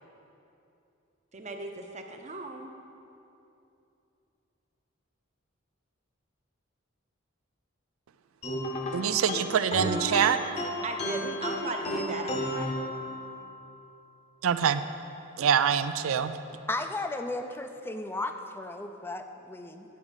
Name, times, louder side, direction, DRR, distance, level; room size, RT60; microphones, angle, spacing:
voice 1, 1.3-2.7 10.8-12.7, right 3 dB, 35° right, 4 dB, 0.7 m, -37 dB
sound 1, 8.4-13.5, left 1 dB, 30° left, 0.8 m, -33 dB
voice 2, 8.9-10.4 14.4-14.8 15.4-16.3, right 8 dB, 85° right, 12 dB, 0.4 m, -25 dB
voice 3, 16.7-19.8, left 2 dB, 10° left, 7 dB, 0.4 m, -35 dB
9.5 x 4.9 x 7.2 m, 2.8 s
head